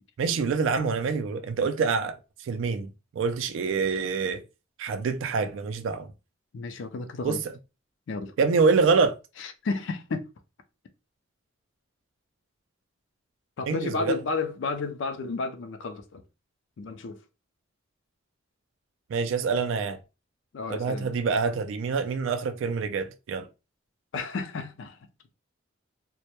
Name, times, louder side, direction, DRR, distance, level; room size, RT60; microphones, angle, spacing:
voice 1, 0.2-4.4 4.8-6.1 7.2-7.5 8.4-9.2 13.7-14.2 19.1-20.0 20.7-23.5, right 5 dB, 70° right, 0.3 m, -26 dB
voice 2, 6.5-7.4 8.1-8.3 9.4-10.2 13.6-16.2 16.8-17.2 20.5-21.1 24.1-25.0, left 3 dB, 65° left, 0.4 m, -32 dB
2.1 x 2.1 x 2.8 m
head